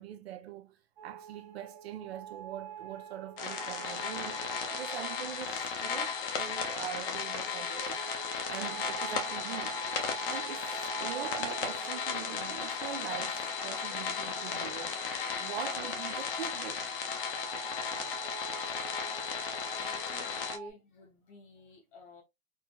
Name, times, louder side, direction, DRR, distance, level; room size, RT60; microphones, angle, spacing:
voice 1, 0.0-4.4 4.7-8.0 8.5-9.8 10.3-15.0 15.4-16.8, right 11 dB, 50° right, 0.6 m, -43 dB
sound 1, 1.0-20.7, right 10 dB, 30° right, 0.9 m, -47 dB
sound 2, 3.4-20.6, left 6 dB, 45° left, 0.8 m, -35 dB
voice 2, 19.7-22.2, left 2 dB, 20° left, 0.5 m, -52 dB
4.3 x 2.0 x 2.2 m
hypercardioid pair, 135°, 41 cm